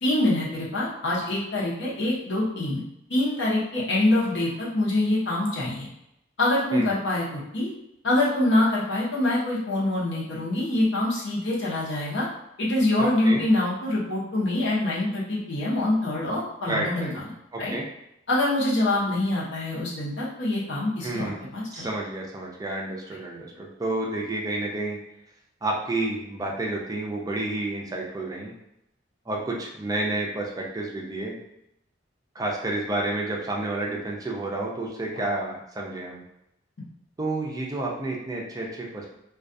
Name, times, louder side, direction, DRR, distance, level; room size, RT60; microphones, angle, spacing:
voice 1, 0.0-2.8 3.1-5.9 6.4-7.7 8.0-12.3 12.6-17.2 17.6-17.7 18.3-21.9 35.1-35.2, left 1 dB, 65° left, -6 dB, 0.8 m, -25 dB
voice 2, 16.7-17.1 17.5-17.8 21.0-21.4 21.7-25.0 25.6-28.5 29.3-31.4 32.4-36.2 37.2-39.1, right 2 dB, 20° right, -2 dB, 0.4 m, -30 dB
2.3 x 2.2 x 2.6 m, 0.82 s
head